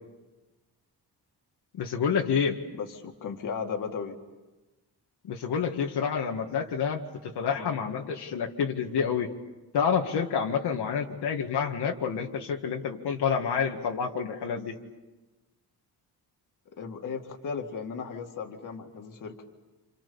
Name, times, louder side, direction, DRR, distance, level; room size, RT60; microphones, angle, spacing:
voice 1, 1.7-2.6 5.2-9.3 9.7-14.8, left 6 dB, 75° left, 1 dB, 2.0 m, -28 dB
voice 2, 2.7-4.2 7.6-7.7 16.8-19.4, left 6 dB, 50° left, 4 dB, 2.3 m, -36 dB
29.0 x 28.0 x 7.1 m, 1.1 s
wide cardioid pair, 180°, 40 cm